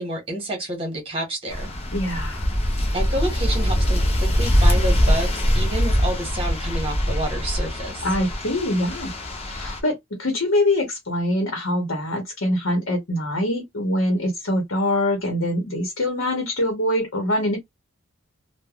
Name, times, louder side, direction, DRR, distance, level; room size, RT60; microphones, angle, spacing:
voice 1, 0.0-1.7 2.9-8.0, right 1 dB, 25° right, 1.2 m, -29 dB
sound 1, 1.5-9.8, equal, 30° left, 0.6 m, -22 dB
voice 2, 1.9-2.5 8.0-9.2 9.4-17.6, left 1 dB, 65° left, 1.0 m, -24 dB
3.2 x 2.2 x 2.3 m
head